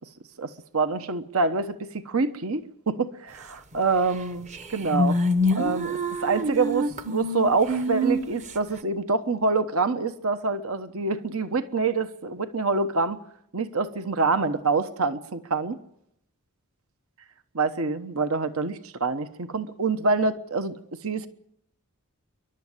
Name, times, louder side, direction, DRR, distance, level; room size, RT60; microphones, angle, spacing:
voice 1, 0.4-5.2 5.5-13.2 13.5-15.8 17.5-20.8 21.0-21.3, right 4 dB, 70° right, 1.1 m, -26 dB
sound 1, 4.1-4.2 4.5-8.5, equal, 30° right, 1.0 m, -26 dB
29.0 x 12.0 x 9.7 m
head